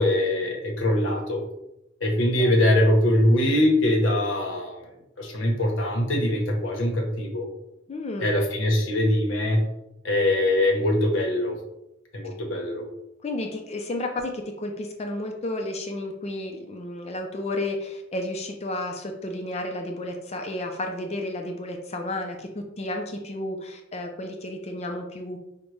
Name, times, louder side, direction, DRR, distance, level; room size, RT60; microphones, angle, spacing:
voice 1, 0.0-1.4 2.0-4.9 5.2-7.5 8.2-9.6 10.0-11.6 12.1-12.8, left 1 dB, 85° left, 2 dB, 0.9 m, -22 dB
voice 2, 7.9-8.3 13.2-22.5 22.8-25.4, left 1 dB, 35° left, 3 dB, 0.4 m, -32 dB
5.2 x 2.1 x 3.1 m, 0.87 s
head